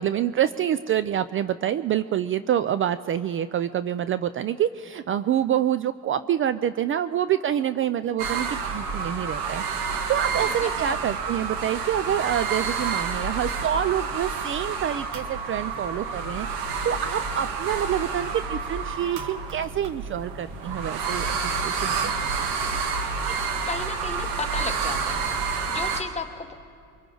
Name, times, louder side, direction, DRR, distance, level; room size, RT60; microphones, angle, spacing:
voice 1, 0.0-22.1, right 10 dB, 40° right, 13 dB, 0.4 m, -27 dB
sound 1, 8.2-26.0, right 5 dB, 85° right, 1.8 m, -29 dB
voice 2, 10.3-11.0 23.3-26.5, left 4 dB, 20° left, 6 dB, 1.2 m, -35 dB
28.5 x 23.5 x 3.9 m, 2.4 s
cardioid pair, 120°, 33 cm